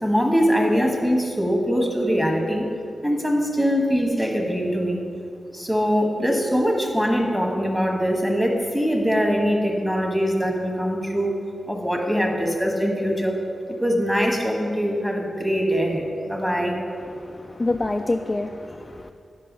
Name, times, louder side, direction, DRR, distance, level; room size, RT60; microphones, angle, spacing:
voice 1, 0.0-2.7 3.0-5.0 5.5-11.4 11.7-13.4 13.8-16.8, equal, 5° right, 1 dB, 1.4 m, -22 dB
voice 2, 17.0-19.1, left 2 dB, 25° left, 5 dB, 0.3 m, -27 dB
11.0 x 5.6 x 5.3 m, 2.4 s
wide cardioid pair, 105°, 0 cm